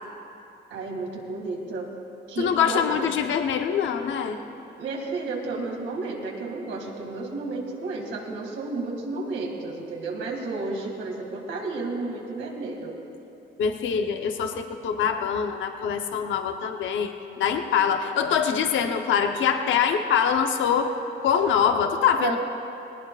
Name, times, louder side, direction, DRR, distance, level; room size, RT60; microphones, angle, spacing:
voice 1, 0.7-1.9 2.3-3.2 4.8-12.9 22.2-22.4, right 3 dB, 80° right, 0 dB, 2.3 m, -32 dB
voice 2, 2.4-4.4 13.6-20.9 21.2-22.4, left 7 dB, 75° left, 5 dB, 0.9 m, -24 dB
19.5 x 18.5 x 2.5 m, 2.8 s
cardioid pair, 90°, 20 cm